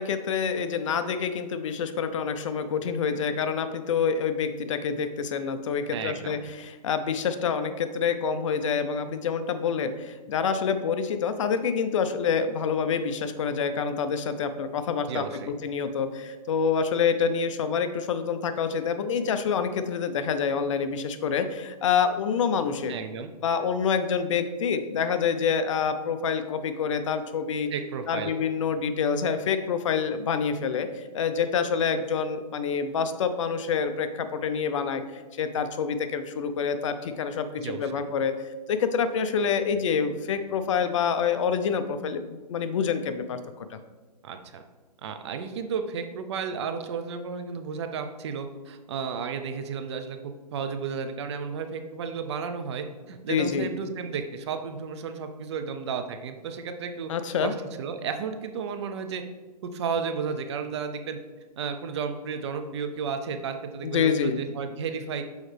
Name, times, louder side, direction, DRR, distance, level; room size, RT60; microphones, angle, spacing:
voice 1, 0.0-15.2 15.6-22.9 23.4-27.7 28.1-38.3 38.7-43.8 53.3-53.7 57.1-57.5 63.8-64.4, left 6 dB, 50° left, 10 dB, 0.5 m, -27 dB
voice 2, 5.9-6.4 15.1-15.5 22.9-23.3 27.7-28.3 37.6-38.0 44.2-44.6 45.0-57.1 57.4-59.2 59.6-61.2 61.6-65.2, right 6 dB, 40° right, 8 dB, 0.5 m, -33 dB
6.4 x 4.8 x 3.3 m, 1.3 s
hypercardioid pair, 150°, 21 cm